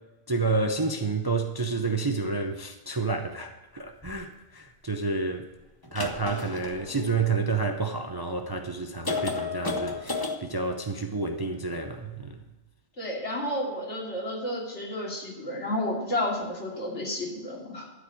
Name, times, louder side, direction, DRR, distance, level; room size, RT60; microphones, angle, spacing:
voice 1, 0.3-5.5 5.9-12.4, right 3 dB, 25° right, 5 dB, 0.5 m, -29 dB
sound 1, 4.0-4.1 5.8-7.7 8.4-8.5 9.0-10.4, left 4 dB, 20° left, 0.8 m, -33 dB
voice 2, 13.0-17.9, left 1 dB, 65° left, -2 dB, 3.0 m, -31 dB
13.0 x 5.1 x 8.5 m, 1.2 s
omnidirectional pair, 1.3 m